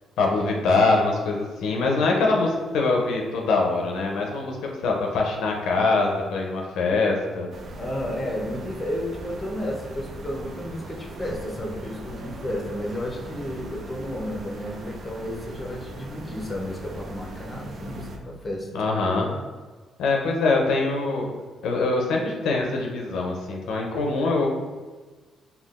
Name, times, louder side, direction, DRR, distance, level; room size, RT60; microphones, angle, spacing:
voice 1, 0.2-7.5 18.7-19.3 20.0-21.3 21.6-24.5, left 3 dB, 85° left, 0 dB, 0.5 m, -23 dB
sound 1, 7.5-18.2, right 1 dB, 50° right, 0.4 m, -39 dB
voice 2, 7.8-18.7, left 1 dB, 25° left, -1 dB, 0.6 m, -32 dB
3.6 x 2.2 x 2.4 m, 1.3 s
cardioid pair, 90°, 0 cm